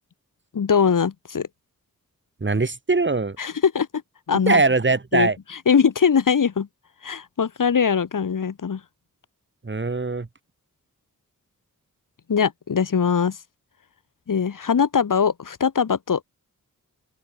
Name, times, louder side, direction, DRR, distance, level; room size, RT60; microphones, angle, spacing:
voice 1, 0.5-1.5 3.4-3.9 4.3-4.6 5.1-5.3 5.7-6.7 7.0-8.8 12.3-13.4 14.3-16.2, left 6 dB, 70° left, 3.5 m, -21 dB
voice 2, 2.4-3.4 4.5-5.4 9.6-10.3, right 3 dB, 35° right, 5.0 m, -21 dB
open air
cardioid pair, 75°, 33 cm